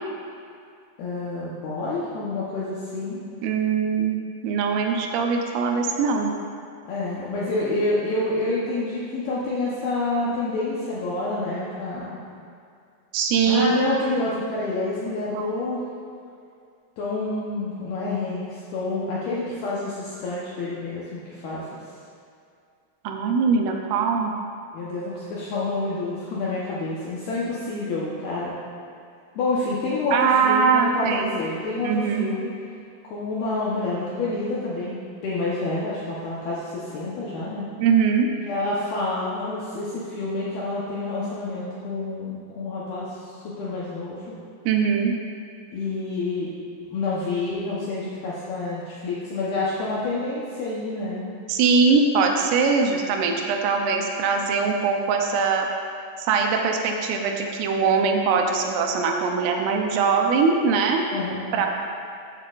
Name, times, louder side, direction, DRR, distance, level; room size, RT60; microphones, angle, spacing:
voice 1, 1.0-3.2 6.9-12.2 13.5-15.8 17.0-21.8 24.7-28.6 29.4-32.5 33.0-37.7 38.4-44.2 45.7-46.5 46.9-51.3 61.1-61.7, left 2 dB, 75° left, -7 dB, 2.3 m, -28 dB
voice 2, 3.4-6.3 13.1-13.8 15.3-15.5 23.0-24.3 30.1-31.3 31.8-32.3 37.8-38.3 44.7-45.1 51.5-55.7 56.2-61.1 61.5-61.7, right 5 dB, 80° right, 2 dB, 3.3 m, -22 dB
13.5 x 8.7 x 2.5 m, 2.4 s
omnidirectional pair, 5.8 m